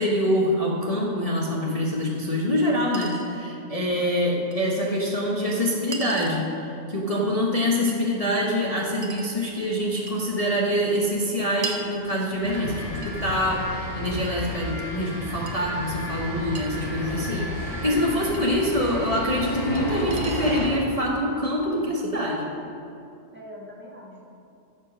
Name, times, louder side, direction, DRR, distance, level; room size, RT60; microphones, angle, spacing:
voice 1, 0.0-22.5, equal, 30° left, -4 dB, 1.0 m, -25 dB
Chink clink, 2.0-2.1 2.9-3.3 4.5-4.6 5.9-6.5 7.9-8.0 9.0-9.3 10.1-10.3 11.6-11.9 13.0-13.2 14.1-14.8 15.5-15.6 16.6-16.7 18.3-18.4 19.8-19.9 20.1-20.6, right 3 dB, 40° right, 0.9 m, -37 dB
voice 2, 7.1-7.8 18.1-18.6 23.3-24.3, left 1 dB, 10° right, -3 dB, 1.5 m, -43 dB
sound 1, 7.5-20.5, right 1 dB, 80° right, 1.9 m, -45 dB
sound 2, 12.4-20.7, left 1 dB, 60° left, 3.2 m, -33 dB
13.5 x 5.2 x 6.2 m, 2.8 s
omnidirectional pair, 1.6 m